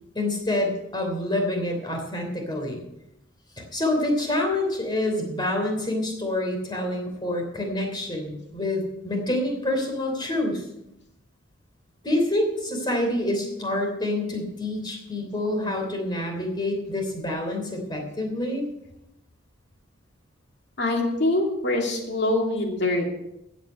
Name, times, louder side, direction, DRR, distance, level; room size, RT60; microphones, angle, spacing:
voice 1, 0.1-2.8 3.7-10.6 12.0-18.7, left 1 dB, 20° left, 2 dB, 3.1 m, -27 dB
voice 2, 20.8-23.0, left 2 dB, 55° left, 1 dB, 2.7 m, -24 dB
15.5 x 8.2 x 5.5 m, 0.84 s
head